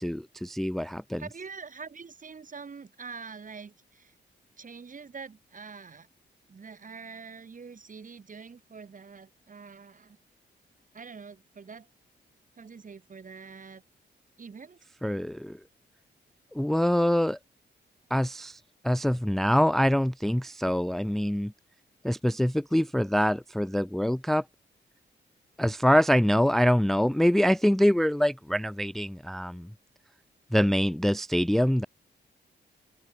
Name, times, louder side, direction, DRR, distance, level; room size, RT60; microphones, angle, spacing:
voice 1, 0.0-1.2 15.0-15.6 16.5-17.4 18.1-21.5 22.0-24.4 25.6-29.7 30.5-31.9, equal, ahead, 0.5 m, -25 dB
voice 2, 1.2-4.1 4.6-6.1 6.5-10.2 10.9-11.9 12.6-13.8 14.4-14.8, right 5 dB, 45° right, 5.4 m, -45 dB
wide cardioid pair, 110°, 19 cm